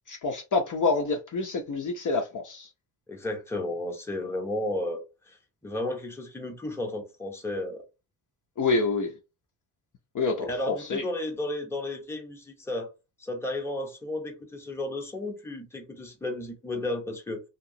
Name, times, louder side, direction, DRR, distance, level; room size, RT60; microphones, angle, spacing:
voice 1, 0.1-2.7 8.6-9.1 10.1-11.0, left 3 dB, 40° left, 0.6 m, -27 dB
voice 2, 3.1-5.4 5.6-7.8 10.5-12.9 13.2-17.4, left 1 dB, 5° left, 0.7 m, -33 dB
2.9 x 2.8 x 2.7 m
cardioid pair, 140°, 47 cm